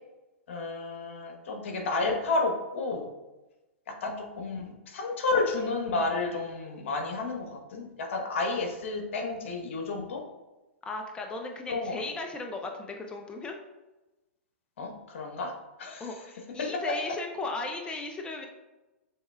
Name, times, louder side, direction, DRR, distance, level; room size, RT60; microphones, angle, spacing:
voice 1, 0.5-3.0 4.0-10.2 11.7-12.0 14.8-15.5 15.8-16.1 16.6-16.7, left 3 dB, 65° left, 2 dB, 1.1 m, -31 dB
voice 2, 10.8-13.5 16.0-18.5, left 3 dB, 15° left, 3 dB, 0.5 m, -36 dB
7.0 x 3.3 x 2.3 m, 1.1 s
hypercardioid pair, 115°, 7 cm